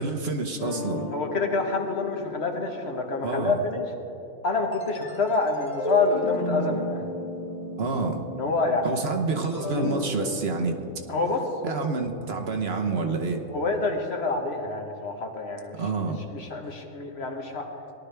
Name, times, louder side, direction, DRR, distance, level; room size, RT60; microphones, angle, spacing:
voice 1, 0.0-1.1 3.2-3.6 7.8-8.2 8.8-10.8 11.6-13.4 15.8-16.2, right 4 dB, 55° right, 4 dB, 1.1 m, -28 dB
sound 1, 0.6-3.8 4.7-9.0 9.3-13.5, left 2 dB, 35° left, 1.0 m, -35 dB
voice 2, 1.1-3.9 4.4-7.0 8.4-8.9 11.1-11.5 13.5-15.8 16.3-17.7, left 3 dB, 55° left, 3 dB, 1.4 m, -27 dB
18.5 x 11.5 x 3.4 m, 2.8 s
omnidirectional pair, 1.3 m